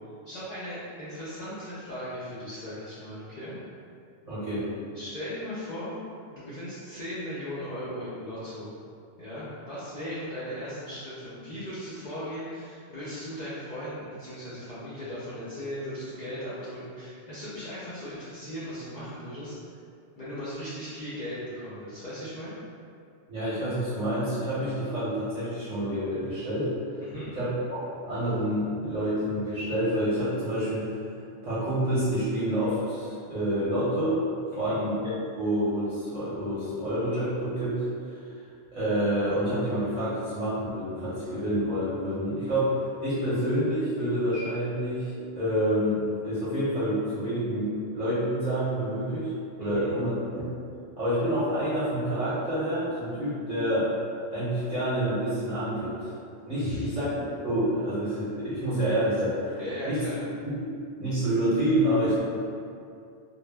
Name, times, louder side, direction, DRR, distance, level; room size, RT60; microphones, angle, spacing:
voice 1, 0.3-3.6 4.9-6.0 6.3-8.8 9.2-19.6 20.2-22.5 27.0-27.3 34.5-34.8 49.7-49.9 56.5-56.9 59.6-60.2, equal, 55° left, -11 dB, 0.5 m, -37 dB
voice 2, 4.2-4.7 23.3-26.7 27.3-30.9 31.4-34.2 34.6-37.9 38.7-49.3 49.6-50.4 51.0-53.9 54.3-56.1 56.5-59.6 59.8-60.0 60.6-60.7 61.0-62.2, equal, 40° right, -12 dB, 0.7 m, -28 dB
2.0 x 2.0 x 3.3 m, 2.4 s
omnidirectional pair, 1.1 m